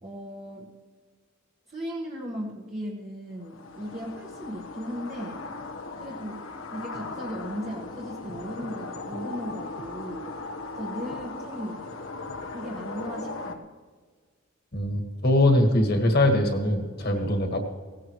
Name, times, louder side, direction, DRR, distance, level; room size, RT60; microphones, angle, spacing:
voice 1, 0.0-0.7 1.7-5.4 6.0-6.4 6.7-10.3 10.8-11.8 12.5-13.7 17.1-17.3, equal, 30° right, -3 dB, 1.5 m, -37 dB
sound 1, 3.4-13.6, left 3 dB, 80° left, 1.2 m, -38 dB
voice 2, 14.7-17.6, left 1 dB, 50° left, 3 dB, 1.8 m, -22 dB
17.5 x 16.0 x 3.1 m, 1.5 s
head